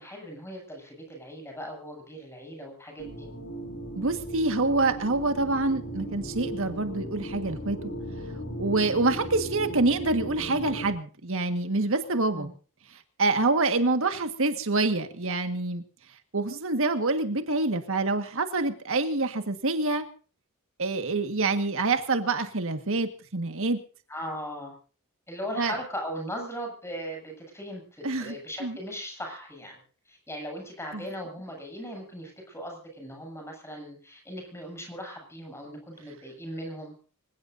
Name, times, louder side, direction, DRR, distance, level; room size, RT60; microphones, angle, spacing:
voice 1, 0.0-3.3 12.3-12.5 24.1-24.7 25.3-29.8 30.1-36.9, equal, 10° left, 1 dB, 7.8 m, -38 dB
sound 1, 3.0-10.9, right 1 dB, 60° left, 6.9 m, -37 dB
voice 2, 4.0-7.8 8.6-12.5 13.2-15.8 16.3-20.1 20.8-23.8 25.6-25.8 28.0-28.8 30.9-31.0, right 3 dB, 65° right, 8 dB, 1.7 m, -26 dB
26.0 x 17.0 x 2.7 m, 0.38 s
head